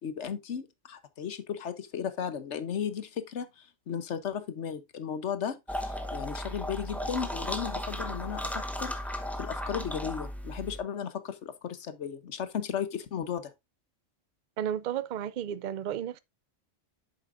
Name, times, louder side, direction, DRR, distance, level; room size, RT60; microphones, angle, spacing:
voice 1, 0.0-13.5, left 8 dB, 70° left, 1.2 m, -35 dB
sound 1, 5.7-10.8, equal, ahead, 0.8 m, -35 dB
voice 2, 14.6-16.2, right 10 dB, 55° right, 0.5 m, -33 dB
8.2 x 7.1 x 2.5 m
omnidirectional pair, 1.2 m